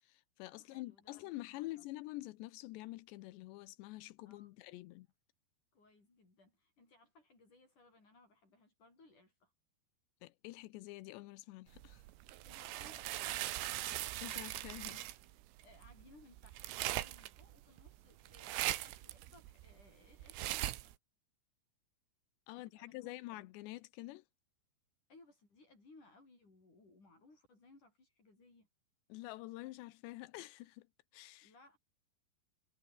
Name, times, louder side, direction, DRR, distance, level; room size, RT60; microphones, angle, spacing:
voice 1, 0.0-5.1 10.2-12.0 14.2-15.1 22.5-24.2 29.1-30.9 31.1-31.5, left 19 dB, 85° left, 2.5 m, -47 dB
voice 2, 0.6-1.9 4.2-4.7 5.7-9.5 12.4-14.0 15.6-21.0 22.5-23.5 25.1-28.7 31.4-31.8, left 2 dB, 35° left, 9.3 m, -64 dB
sound 1, 11.7-20.9, right 15 dB, 80° right, 4.0 m, -41 dB
omnidirectional pair, 6.0 m